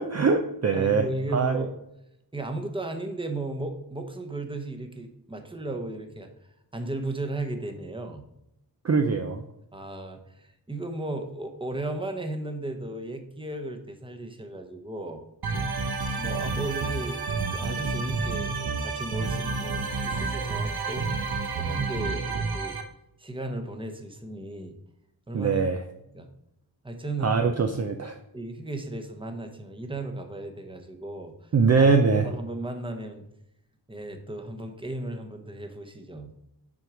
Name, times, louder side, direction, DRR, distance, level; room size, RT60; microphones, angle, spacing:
voice 1, 0.0-1.1 1.3-1.6 8.8-9.4 25.3-25.8 27.2-28.1 31.5-32.3, right 5 dB, 40° right, 5 dB, 0.5 m, -22 dB
voice 2, 0.7-1.7 2.3-6.3 6.7-8.2 9.7-15.2 16.1-18.5 18.8-22.8 23.2-24.8 25.3-25.5 26.1-26.3 26.8-27.6 28.3-31.5 31.8-31.9 32.2-33.3 33.9-36.3, right 2 dB, 15° right, 4 dB, 0.9 m, -35 dB
sound 1, 15.4-22.8, right 4 dB, 65° right, 0.9 m, -30 dB
6.0 x 4.7 x 5.0 m, 0.82 s
wide cardioid pair, 90°, 40 cm